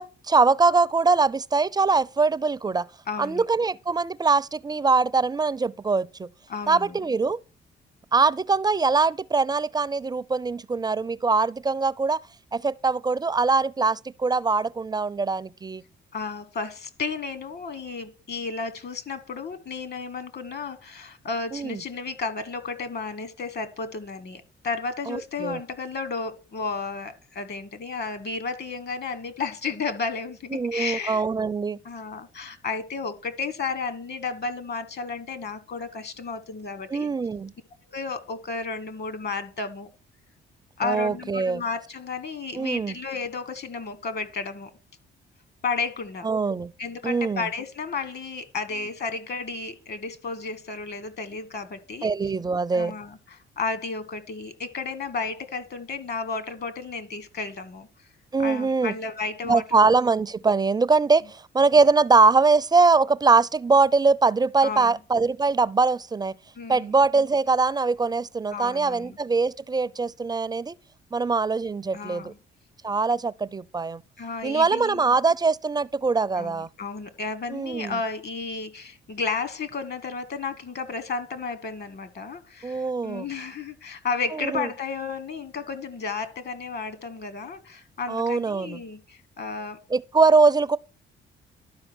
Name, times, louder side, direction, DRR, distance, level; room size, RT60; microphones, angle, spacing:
voice 1, 0.0-2.9 3.2-6.3 6.7-7.4 8.1-12.2 12.5-15.8 21.5-21.8 25.1-25.6 30.5-31.8 36.9-37.5 40.8-41.6 42.6-42.9 46.2-46.7 47.0-47.5 52.0-52.9 58.3-58.9 59.4-66.3 66.7-70.7 71.1-72.3 72.8-74.0 74.4-76.7 77.5-78.0 82.6-83.3 84.3-84.7 88.1-88.8 89.9-90.8, right 4 dB, 20° right, 0.4 m, -22 dB
voice 2, 3.1-3.4 6.5-7.0 16.1-31.2 31.8-37.1 37.9-39.9 40.8-44.7 45.6-46.3 46.8-52.1 52.7-57.9 58.4-59.8 64.6-64.9 66.5-66.9 68.5-69.2 71.9-72.4 74.2-75.0 76.4-89.9, left 4 dB, 55° left, 1.5 m, -33 dB
12.0 x 4.9 x 6.2 m
cardioid pair, 90°, 20 cm